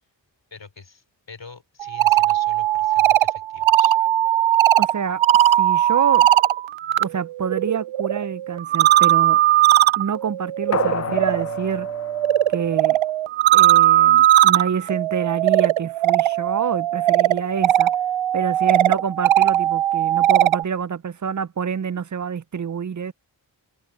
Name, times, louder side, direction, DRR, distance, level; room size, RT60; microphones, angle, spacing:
voice 1, 0.5-3.9, left 4 dB, 70° left, 4.5 m, -44 dB
sound 1, 1.8-7.1 7.4-20.6, right 13 dB, 90° right, 0.5 m, -19 dB
voice 2, 4.8-6.3 7.0-9.4 10.0-11.9 12.5-13.0 13.5-17.9 18.3-23.1, right 7 dB, 40° right, 0.6 m, -27 dB
sound 2, 10.7-13.3 13.6-13.7, left 6 dB, 35° left, 0.6 m, -31 dB
cardioid pair, 45°, 45 cm